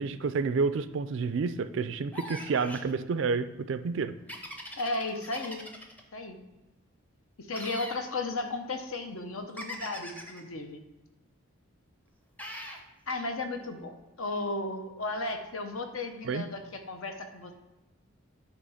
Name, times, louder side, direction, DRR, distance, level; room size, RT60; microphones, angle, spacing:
voice 1, 0.0-4.1 16.2-16.4, right 4 dB, 60° right, 11 dB, 0.3 m, -29 dB
sound 1, 2.1-2.9 4.3-6.0 7.5-8.0 9.6-10.4 12.4-12.8, equal, 5° left, 0.6 m, -41 dB
voice 2, 4.8-5.6 6.1-6.4 7.4-10.8 13.1-13.9 14.2-17.5, left 2 dB, 70° left, 6 dB, 0.8 m, -34 dB
8.2 x 3.0 x 5.6 m, 1.0 s
head